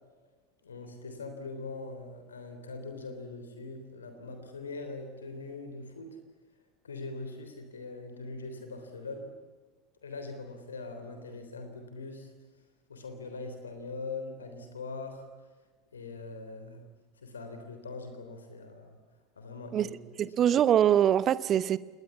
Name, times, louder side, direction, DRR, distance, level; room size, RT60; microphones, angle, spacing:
voice 1, 0.6-6.2 6.8-9.3 10.0-12.3 12.9-15.3 15.9-16.8 17.2-19.0 19.4-19.9, left 3 dB, 75° left, 7 dB, 3.4 m, -42 dB
voice 2, 20.2-21.8, right 10 dB, 35° right, 17 dB, 1.0 m, -23 dB
28.0 x 21.5 x 8.4 m, 1.4 s
figure-of-eight pair, 75°, 0 cm